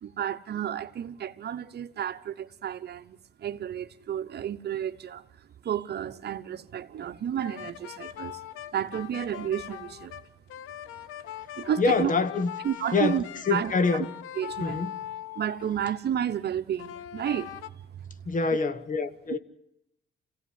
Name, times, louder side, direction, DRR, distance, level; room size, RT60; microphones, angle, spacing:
voice 1, 0.0-5.2 5.6-8.4 8.7-10.1 11.6-12.1 12.6-13.2 13.5-14.1 14.4-14.9 15.4-18.1, right 9 dB, 55° right, 1.0 m, -32 dB
sound 1, 7.4-15.9 16.8-17.7, left 11 dB, 90° left, 0.9 m, -41 dB
voice 2, 11.8-12.5 12.9-14.1 14.6-15.0 18.2-19.4, left 4 dB, 40° left, 1.4 m, -26 dB
27.0 x 16.5 x 9.6 m
cardioid pair, 90°, 20 cm